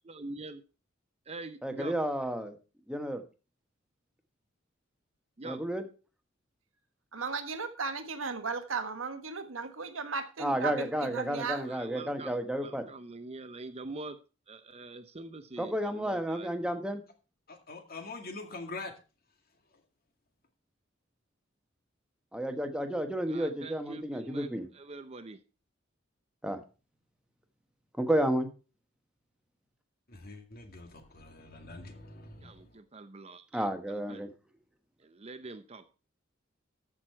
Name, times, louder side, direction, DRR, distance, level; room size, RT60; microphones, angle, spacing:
voice 1, 0.1-0.6 1.3-1.9 5.4-5.6 11.9-12.3 12.6-14.1 14.5-15.8 16.1-16.5 23.3-24.5 24.9-25.4 32.4-32.5 32.9-33.4 34.1-34.2 35.2-35.8, right 3 dB, 30° right, 10 dB, 0.7 m, -43 dB
voice 2, 1.6-2.5 2.9-3.2 5.4-5.9 10.4-12.8 15.6-17.0 22.3-24.7 26.4-26.6 28.0-28.5 33.5-34.3, equal, 5° right, 6 dB, 1.3 m, -31 dB
voice 3, 7.1-11.7, right 5 dB, 80° right, 8 dB, 1.3 m, -36 dB
voice 4, 17.5-18.9 30.1-32.7, left 3 dB, 50° left, 5 dB, 2.1 m, -44 dB
13.5 x 6.3 x 4.6 m, 0.34 s
head